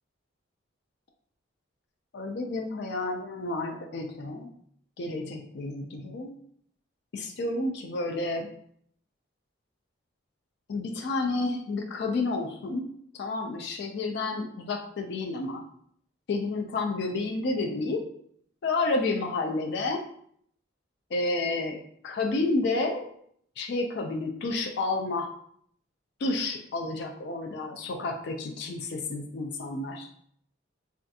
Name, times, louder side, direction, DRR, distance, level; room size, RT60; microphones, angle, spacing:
voice 1, 2.1-4.5 5.0-6.4 7.1-8.5 10.7-12.9 13.1-15.6 16.3-18.0 18.6-20.0 21.1-21.8 22.0-23.1 23.6-25.3 26.2-30.1, left 2 dB, 55° left, 4 dB, 0.3 m, -30 dB
3.3 x 2.3 x 2.7 m, 0.64 s
head